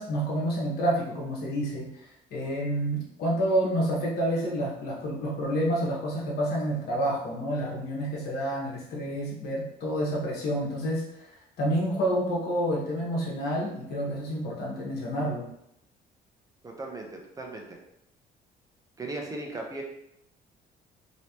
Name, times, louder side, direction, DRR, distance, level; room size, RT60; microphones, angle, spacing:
voice 1, 0.0-1.9 2.3-11.0 11.6-15.5, equal, 70° left, -4 dB, 1.3 m, -28 dB
voice 2, 16.6-17.8 19.0-19.8, right 2 dB, 20° right, 1 dB, 0.8 m, -37 dB
3.2 x 2.9 x 2.9 m, 0.79 s
cardioid pair, 110°, 17 cm